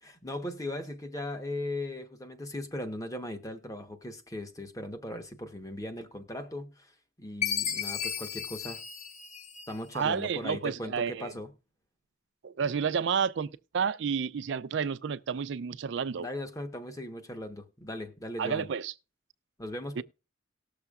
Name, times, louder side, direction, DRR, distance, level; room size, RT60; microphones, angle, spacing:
voice 1, 0.0-6.9 7.2-8.8 9.7-11.5 16.1-18.7 19.6-20.0, left 1 dB, 15° left, 1.0 m, -38 dB
Chime, 7.4-10.0, left 8 dB, 35° left, 0.7 m, -34 dB
voice 2, 9.9-11.3 12.4-16.3 18.4-18.9 20.0-20.1, right 6 dB, 65° right, 0.4 m, -30 dB
19.0 x 6.9 x 2.4 m
head